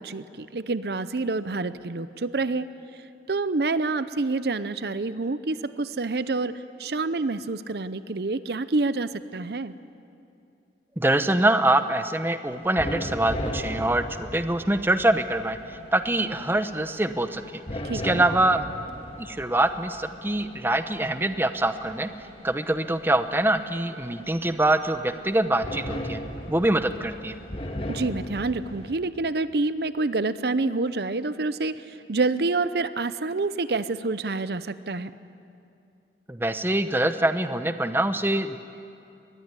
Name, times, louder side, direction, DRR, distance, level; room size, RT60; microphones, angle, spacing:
voice 1, 0.0-2.7 3.3-9.7 17.8-18.2 27.9-35.1, right 3 dB, 65° right, 14 dB, 0.7 m, -27 dB
voice 2, 11.0-17.6 18.0-18.7 19.2-22.1 22.4-26.2 26.5-27.3 36.3-38.6, right 1 dB, 10° right, 10 dB, 0.8 m, -24 dB
sound 1, 12.5-28.9, left 1 dB, 30° left, 1.9 m, -38 dB
23.0 x 20.5 x 9.7 m, 2.6 s
head